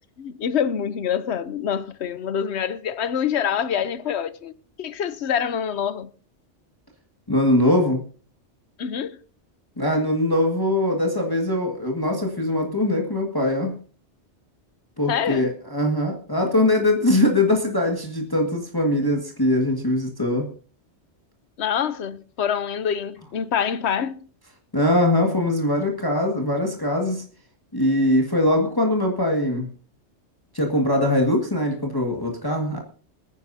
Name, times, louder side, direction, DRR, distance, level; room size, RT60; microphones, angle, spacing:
voice 1, 0.2-4.5 4.8-6.1 8.8-9.2 15.1-15.5 21.6-24.2, left 8 dB, 70° left, 1.0 m, -26 dB
voice 2, 7.3-8.0 9.8-13.7 15.0-20.5 24.7-27.2 27.7-29.7 30.5-32.8, left 1 dB, 20° left, 1.8 m, -22 dB
27.0 x 9.8 x 2.7 m
omnidirectional pair, 1.2 m